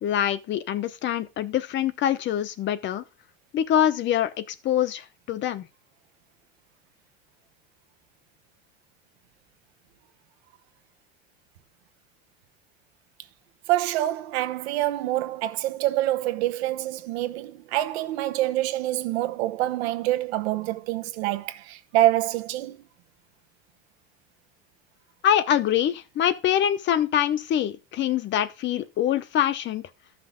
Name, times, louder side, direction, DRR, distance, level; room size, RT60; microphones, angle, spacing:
voice 1, 0.0-3.0 3.5-5.7 25.2-29.8, left 10 dB, 35° left, 0.7 m, -24 dB
voice 2, 13.7-22.8, right 15 dB, 85° right, 1.0 m, -26 dB
13.0 x 5.9 x 3.7 m
supercardioid pair, 135°, 31 cm